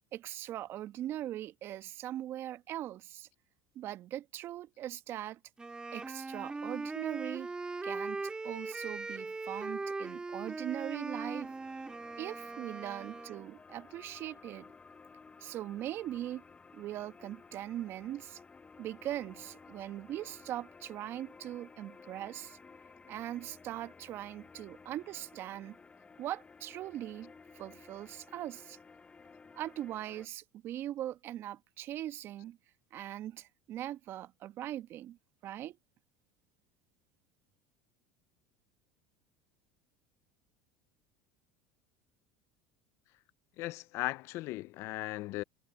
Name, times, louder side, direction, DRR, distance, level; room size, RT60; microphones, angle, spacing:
voice 1, 0.1-3.3 3.7-5.4 5.9-7.5 7.8-11.5 12.2-14.7 15.4-16.4 16.7-18.4 18.8-22.6 23.1-25.8 26.2-28.8 29.5-32.6 32.9-35.2 35.4-35.8, right 12 dB, 50° right, 1.3 m, -40 dB
Wind instrument woodwind instrument, 5.6-13.5, right 3 dB, 15° right, 2.7 m, -40 dB
sound 1, 11.2-30.3, left 4 dB, 20° left, 7.5 m, -55 dB
voice 2, 43.6-45.4, left 19 dB, 60° left, 0.6 m, -37 dB
hypercardioid pair, 85°, 5 cm